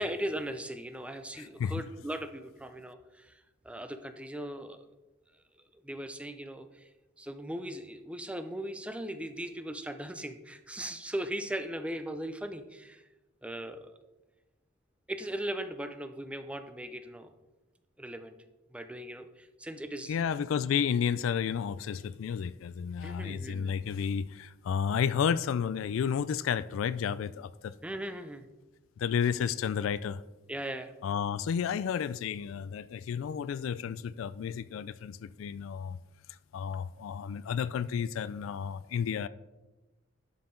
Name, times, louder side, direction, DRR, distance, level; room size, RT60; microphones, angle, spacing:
voice 1, 0.0-3.4 3.6-4.8 5.7-6.9 7.2-13.0 13.4-13.9 15.1-17.3 18.0-18.4 18.7-20.2 23.0-23.7 27.8-28.5 30.5-30.9, right 1 dB, 5° right, 0.5 m, -38 dB
voice 2, 1.3-1.9 20.1-27.8 29.0-30.2 31.0-36.0 36.5-39.3, left 7 dB, 85° left, 0.3 m, -32 dB
11.5 x 5.8 x 3.7 m
head